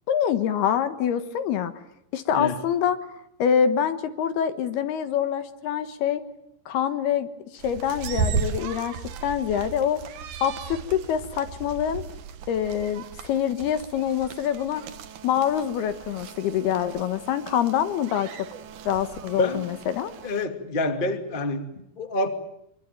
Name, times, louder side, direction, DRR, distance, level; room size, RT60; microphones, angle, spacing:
voice 1, 0.1-1.7 2.1-3.0 3.4-6.2 6.7-9.0 9.2-10.0 10.4-12.0 12.5-14.8 15.2-18.5 18.9-20.1, left 9 dB, 65° left, 11 dB, 2.8 m, -25 dB
sound 1, 7.6-20.5, right 6 dB, 80° right, 1.7 m, -36 dB
voice 2, 19.3-19.7 20.2-22.3, left 2 dB, 85° left, 7 dB, 0.4 m, -27 dB
25.5 x 24.5 x 9.1 m, 0.77 s
omnidirectional pair, 5.7 m